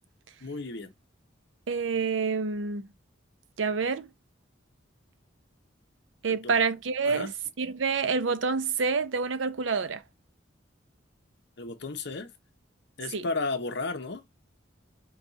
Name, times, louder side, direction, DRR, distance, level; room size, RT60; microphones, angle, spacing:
voice 1, 0.4-0.9 6.3-6.5 7.0-7.3 11.6-12.3 13.0-14.3, left 3 dB, 60° left, 0.9 m, -33 dB
voice 2, 1.7-2.9 3.6-4.1 6.2-7.3 7.6-10.0 13.1-13.2, right 5 dB, 75° right, 0.6 m, -27 dB
5.2 x 2.4 x 4.0 m
head